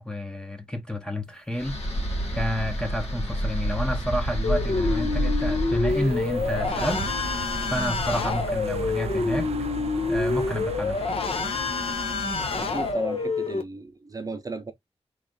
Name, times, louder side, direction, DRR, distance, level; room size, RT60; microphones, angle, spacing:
voice 1, 0.0-1.8 2.3-7.1 7.7-9.5 10.1-11.2, equal, 10° left, 0.7 m, -30 dB
sound 1, 1.5-8.7, equal, 80° left, 1.4 m, -30 dB
sound 2, 4.4-13.6, left 4 dB, 65° left, 0.8 m, -27 dB
sound 3, 5.9-12.9, right 7 dB, 75° right, 0.4 m, -36 dB
voice 2, 12.5-14.7, right 3 dB, 35° right, 0.7 m, -35 dB
3.2 x 2.6 x 3.8 m
wide cardioid pair, 120°, 11 cm